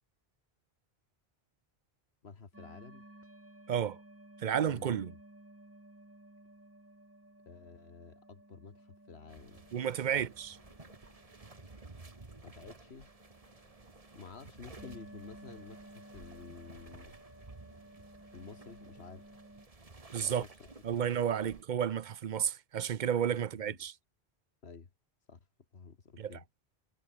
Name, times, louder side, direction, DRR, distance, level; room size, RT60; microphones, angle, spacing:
voice 1, 2.2-3.0 4.7-5.2 7.5-9.6 10.1-10.3 12.4-13.1 14.1-17.1 18.3-19.3 20.3-20.7 21.0-21.1 21.4-21.5 23.7-23.8 24.6-24.9 25.3-25.4 25.7-26.4, left 5 dB, 80° left, 2.0 m, -51 dB
sound 1, 2.5-19.7, right 1 dB, 15° right, 1.6 m, -56 dB
voice 2, 3.7-4.0 4.4-5.2 9.7-10.6 20.1-20.4 20.8-23.9 26.2-26.4, right 9 dB, 55° right, 0.7 m, -32 dB
sound 2, 9.3-21.6, right 3 dB, 35° right, 1.9 m, -54 dB
omnidirectional pair, 1.1 m